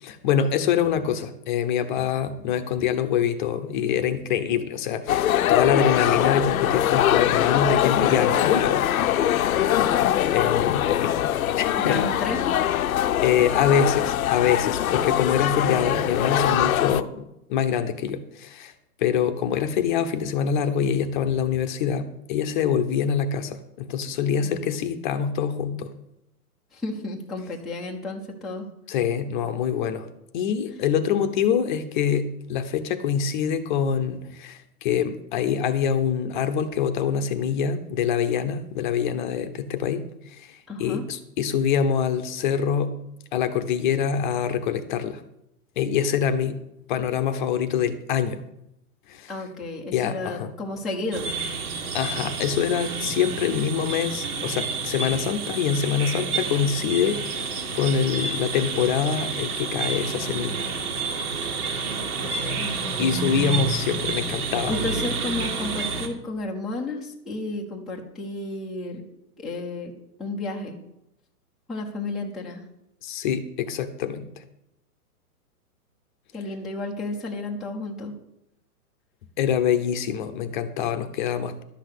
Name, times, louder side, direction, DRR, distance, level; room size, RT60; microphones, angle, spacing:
voice 1, 0.0-8.8 10.3-11.1 11.5-12.0 13.2-18.7 19.0-25.9 28.9-30.1 30.3-40.0 40.3-42.9 43.3-45.2 45.8-46.6 46.9-48.4 49.1-49.3 49.9-50.5 51.9-60.6 63.0-64.9 73.0-74.4 79.4-81.6, left 8 dB, 30° left, 9 dB, 0.8 m, -25 dB
sound 1, 5.1-17.0, left 11 dB, 65° left, 0.8 m, -22 dB
voice 2, 11.7-12.4 24.4-24.9 26.7-28.7 40.7-41.0 49.3-51.3 62.2-62.7 64.7-69.0 69.4-69.9 70.2-70.8 71.7-72.6 76.3-78.1, left 2 dB, ahead, -5 dB, 0.7 m, -32 dB
sound 2, 51.1-66.1, right 4 dB, 75° right, 2.2 m, -29 dB
12.0 x 6.2 x 8.3 m, 0.84 s
hypercardioid pair, 150°, 46 cm